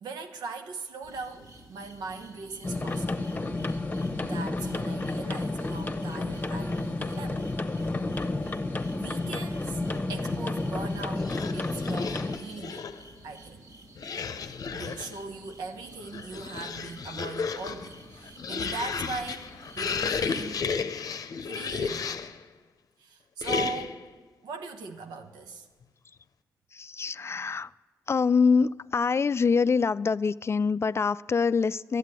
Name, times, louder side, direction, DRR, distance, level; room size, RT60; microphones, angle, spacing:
voice 1, 0.0-3.3 4.2-7.5 8.9-9.8 10.1-12.9 13.2-13.6 14.6-20.8 21.5-22.2 23.0-24.0 24.4-25.7, right 4 dB, 85° right, 6 dB, 1.0 m, -39 dB
sound 1, 1.0-20.7, right 1 dB, 65° right, 2.0 m, -51 dB
sound 2, 2.6-12.4, left 2 dB, 25° left, 1.0 m, -31 dB
sound 3, 11.2-13.1 14.0-15.2 15.9-22.4 23.4-24.1, left 5 dB, 65° left, 0.7 m, -33 dB
voice 2, 26.7-27.7 28.1-32.0, left 5 dB, 40° left, 18 dB, 0.3 m, -25 dB
11.5 x 8.3 x 9.6 m, 1.3 s
supercardioid pair, 45°, 7 cm